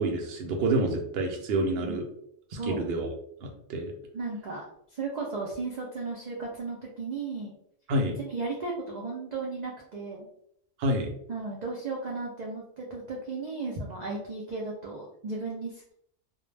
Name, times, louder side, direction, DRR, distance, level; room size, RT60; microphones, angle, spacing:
voice 1, 0.0-2.0 2.7-3.1 3.4-3.9 7.9-8.2 10.8-11.1, right 2 dB, 60° right, 3 dB, 0.7 m, -28 dB
voice 2, 1.8-2.1 2.6-2.8 4.1-4.6 4.9-7.5 8.2-10.3 11.3-15.9, right 3 dB, 80° right, -2 dB, 0.3 m, -35 dB
2.2 x 2.0 x 3.1 m, 0.72 s
omnidirectional pair, 1.3 m